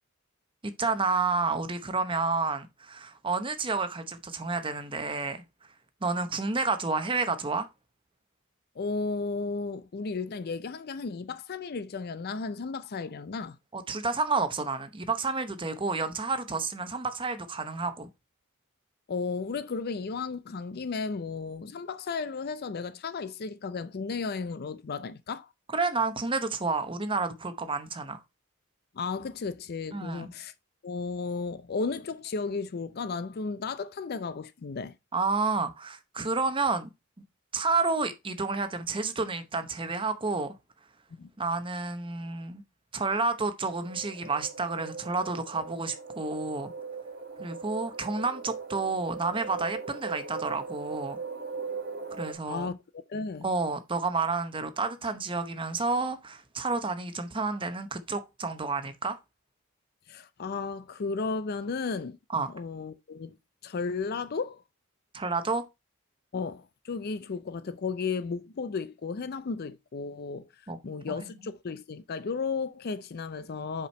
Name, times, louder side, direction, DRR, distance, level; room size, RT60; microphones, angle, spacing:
voice 1, 0.6-5.4 6.0-7.7 13.7-18.1 25.7-28.2 29.9-30.3 35.1-36.9 37.5-40.5 41.4-42.6 42.9-46.7 47.4-51.2 52.2-52.7 53.4-59.2 62.3-62.5 65.1-65.6 70.7-70.8 71.1-71.3, right 4 dB, 25° right, 0.8 m, -30 dB
voice 2, 8.8-13.6 19.1-25.5 28.9-30.5 30.8-34.9 41.1-41.3 52.5-53.5 60.1-62.2 62.5-63.4 63.6-64.6 66.3-70.5 70.8-73.9, left 4 dB, 45° left, 0.5 m, -34 dB
sound 1, 43.7-52.3, right 4 dB, 50° right, 1.7 m, -39 dB
5.5 x 5.0 x 4.3 m
head